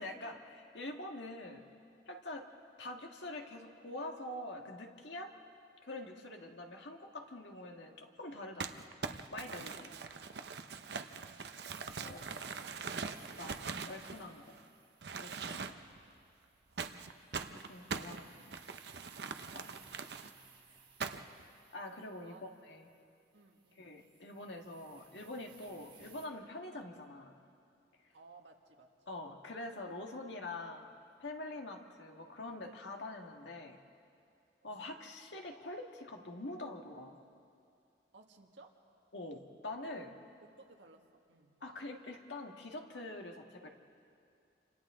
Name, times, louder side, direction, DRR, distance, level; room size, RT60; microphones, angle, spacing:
voice 1, 0.0-1.6 2.1-2.4 2.8-5.3 5.8-8.8 9.3-9.9 12.0-12.3 13.4-14.6 15.2-15.6 17.7-18.6 19.5-19.9 21.7-22.4 22.7-22.9 23.8-27.4 29.1-30.9 31.2-33.8 34.6-37.2 39.1-40.1 41.6-43.7, left 2 dB, 75° left, 2 dB, 1.8 m, -45 dB
Crumpling crinkling, 8.6-14.6 15.0-16.0 16.8-20.3 21.0-21.4, right 5 dB, 60° right, 0.7 m, -42 dB
voice 2, 9.7-10.2 11.1-12.8 17.8-19.0 22.2-22.4 23.3-23.9 28.1-28.9 34.6-34.9 38.1-38.8 40.4-41.0 41.3-41.6, right 3 dB, 75° right, 2 dB, 1.7 m, -62 dB
sound 1, 11.7-26.3, right 5 dB, 25° right, 2.5 m, -63 dB
29.0 x 26.0 x 3.8 m, 2.5 s
head